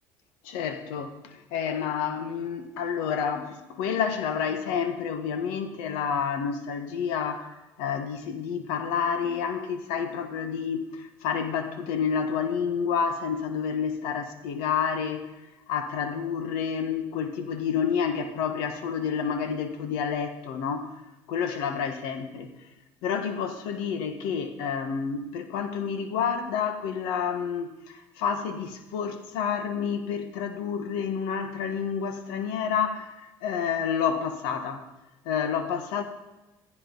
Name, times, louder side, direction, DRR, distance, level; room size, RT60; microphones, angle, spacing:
voice 1, 0.4-7.5 7.8-15.3 15.7-20.9 21.3-22.7 23.0-34.9 35.2-36.0, left 7 dB, 90° left, 1.5 m, -29 dB
15.0 x 15.0 x 4.1 m
cardioid pair, 115°, 8 cm